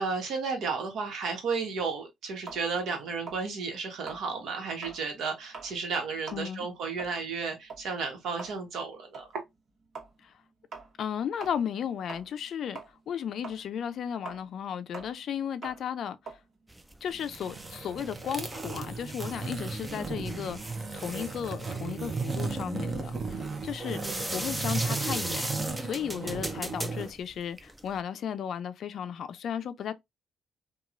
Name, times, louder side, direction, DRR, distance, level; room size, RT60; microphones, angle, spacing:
voice 1, 0.0-9.3 23.9-24.3, right 4 dB, 75° right, 1.1 m, -33 dB
sound 1, 2.5-5.1 5.4-5.8 6.1-12.5 12.7-17.5, right 4 dB, 55° right, 1.3 m, -46 dB
voice 2, 6.3-6.7 10.2-10.3 11.0-12.8 13.1-16.4 17.0-24.0 24.3-29.9, left 8 dB, 65° left, 0.4 m, -35 dB
sound 2, 16.7-28.0, right 1 dB, 10° right, 0.3 m, -39 dB
sound 3, 17.2-27.1, right 4 dB, 35° right, 0.7 m, -35 dB
2.9 x 2.3 x 2.4 m
cardioid pair, 90°, 0 cm